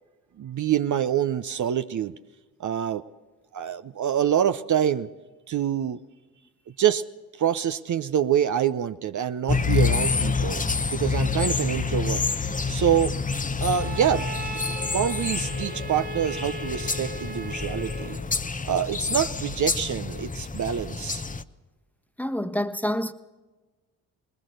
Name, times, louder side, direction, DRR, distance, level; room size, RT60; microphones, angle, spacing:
voice 1, 0.4-2.1 2.6-3.0 3.5-5.1 5.5-6.0 6.8-7.0 7.4-10.6 10.9-12.2 12.7-13.2 13.6-18.2 18.6-21.2, right 9 dB, 50° right, 0.7 m, -26 dB
sound 1, 9.5-21.4, left 5 dB, 20° left, 0.8 m, -28 dB
Bowed string instrument, 13.7-18.3, right 3 dB, 25° right, 1.3 m, -37 dB
voice 2, 22.2-23.1, equal, 5° left, 1.3 m, -27 dB
20.0 x 20.0 x 6.6 m
supercardioid pair, 50°, 39 cm